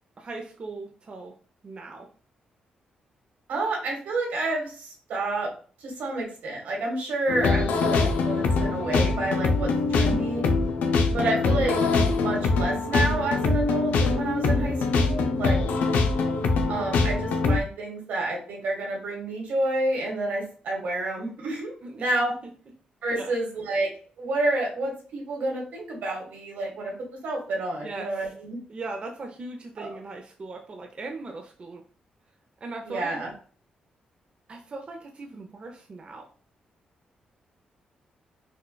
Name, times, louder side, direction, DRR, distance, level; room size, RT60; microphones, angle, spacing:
voice 1, 0.2-1.3 1.6-2.1 8.8-9.1 11.1-11.3 15.0-15.3 21.8-22.1 23.1-23.3 27.8-28.3 28.7-31.8 32.6-33.2 34.5-36.3, right 3 dB, 40° right, 2 dB, 0.5 m, -39 dB
voice 2, 3.5-5.5 5.8-9.7 10.0-10.4 11.1-15.6 16.7-22.3 23.0-23.9 24.2-26.9 27.2-28.6 29.8-30.0 32.8-33.3, right 2 dB, 80° right, -1 dB, 1.4 m, -29 dB
sound 1, 7.3-17.6, left 3 dB, 80° left, 0.4 m, -23 dB
4.4 x 2.2 x 2.2 m, 0.41 s
cardioid pair, 80°, 3 cm